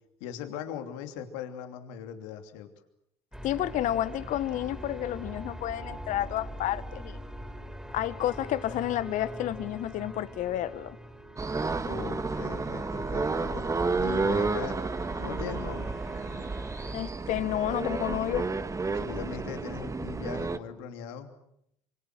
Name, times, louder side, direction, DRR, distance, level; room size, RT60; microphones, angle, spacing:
voice 1, 0.2-2.7 11.8-13.6 14.0-14.8 15.2-16.0 18.9-21.3, left 8 dB, 75° left, 2.9 m, -39 dB
sound 1, 3.3-17.0, equal, 5° right, 4.5 m, -43 dB
voice 2, 3.4-7.2 7.9-11.0 16.9-18.5, left 13 dB, 60° left, 1.4 m, -30 dB
sound 2, 11.4-20.6, right 4 dB, 20° right, 1.6 m, -31 dB
26.5 x 24.5 x 7.6 m
hypercardioid pair, 70°, 15 cm